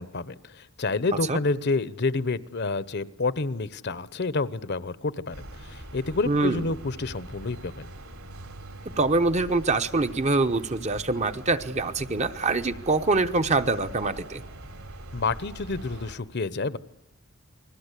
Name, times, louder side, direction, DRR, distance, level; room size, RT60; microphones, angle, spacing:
voice 1, 0.0-7.9 15.1-16.8, left 3 dB, 50° left, 16 dB, 0.9 m, -29 dB
sound 1, 5.3-16.1, right 1 dB, 70° right, 4.6 m, -43 dB
voice 2, 6.3-6.6 9.0-14.4, right 3 dB, 30° right, 9 dB, 0.9 m, -24 dB
29.5 x 21.5 x 8.3 m, 0.94 s
head